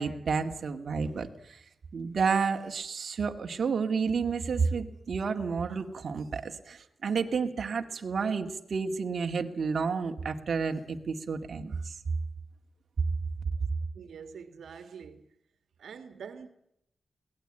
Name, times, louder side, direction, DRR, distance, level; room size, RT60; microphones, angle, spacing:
voice 1, 0.0-1.6 1.9-11.9, right 5 dB, 60° right, 2.2 m, -30 dB
voice 2, 13.9-15.3 15.8-16.5, right 6 dB, 85° right, 2.0 m, -45 dB
22.0 x 18.0 x 9.0 m
wide cardioid pair, 100°, 0 cm